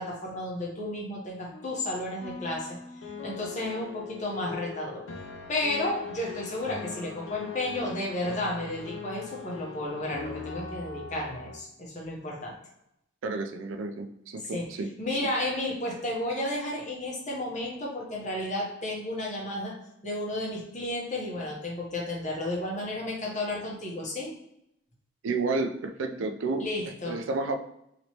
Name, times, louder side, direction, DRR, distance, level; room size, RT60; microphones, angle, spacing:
voice 1, 0.0-2.8 3.2-5.0 5.5-12.6 14.4-14.7 15.0-24.3 26.6-27.2, left 1 dB, 40° left, -2 dB, 0.9 m, -32 dB
sound 1, 1.5-11.6, left 5 dB, 90° left, 0.5 m, -41 dB
voice 2, 13.2-14.9 25.2-26.7 27.1-27.6, right 3 dB, 90° right, 6 dB, 0.4 m, -31 dB
3.0 x 2.9 x 2.8 m, 0.81 s
head